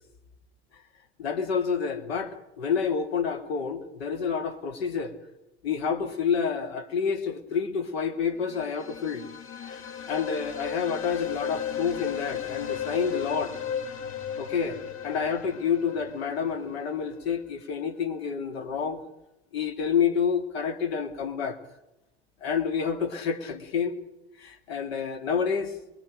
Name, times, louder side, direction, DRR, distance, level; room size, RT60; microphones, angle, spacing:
voice 1, 1.2-5.2 5.6-9.3 9.6-13.6 14.4-19.0 19.5-21.6 22.4-24.0 24.4-25.7, left 6 dB, 65° left, 6 dB, 2.3 m, -29 dB
sound 1, 8.4-17.2, left 8 dB, 40° left, 2.0 m, -35 dB
23.5 x 22.5 x 5.2 m, 0.93 s
figure-of-eight pair, 70°, 33 cm